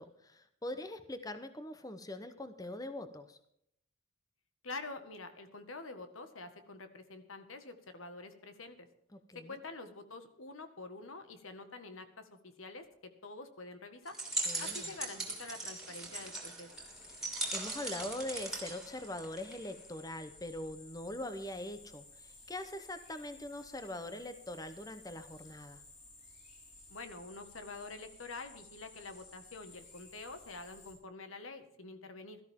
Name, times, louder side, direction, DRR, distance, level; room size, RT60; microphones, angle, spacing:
voice 1, 0.0-3.4 9.1-9.6 14.5-14.9 17.1-17.2 17.5-25.8, left 1 dB, 15° left, 10 dB, 0.8 m, -42 dB
voice 2, 4.6-8.9 9.3-12.9 13.2-14.2 14.6-16.7 26.9-32.4, left 3 dB, 80° left, 8 dB, 1.7 m, -47 dB
sound 1, 14.1-19.7, right 2 dB, 5° right, 2.9 m, -39 dB
sound 2, 16.7-30.9, left 2 dB, 35° left, 6.0 m, -56 dB
17.5 x 13.5 x 3.7 m, 0.72 s
head